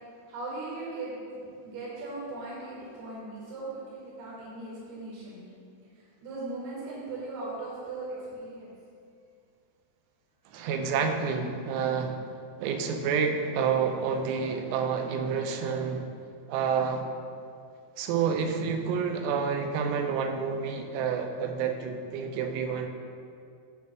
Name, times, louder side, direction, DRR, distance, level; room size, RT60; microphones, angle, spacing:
voice 1, 0.3-1.2 1.6-5.4 6.0-8.7, right 2 dB, 70° right, -7 dB, 3.5 m, -38 dB
voice 2, 10.5-12.2 12.6-16.1 16.5-17.1 18.0-22.9, right 6 dB, 85° right, 5 dB, 2.8 m, -29 dB
9.4 x 3.4 x 6.6 m, 2.4 s
omnidirectional pair, 4.8 m